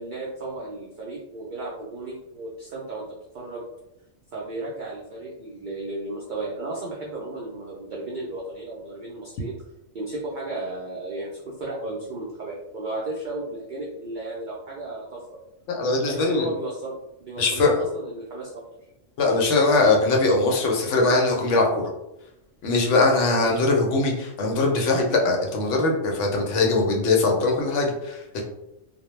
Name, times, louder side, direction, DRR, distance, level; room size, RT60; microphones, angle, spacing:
voice 1, 0.0-3.0 3.3-3.6 4.3-9.6 9.9-15.2 16.0-16.9 17.2-18.6, right 2 dB, 75° right, -4 dB, 0.4 m, -34 dB
voice 2, 15.7-16.5 17.4-17.7 19.2-21.8 22.6-28.4, left 3 dB, 70° left, 1 dB, 0.8 m, -21 dB
2.2 x 2.1 x 3.0 m, 0.87 s
omnidirectional pair, 1.4 m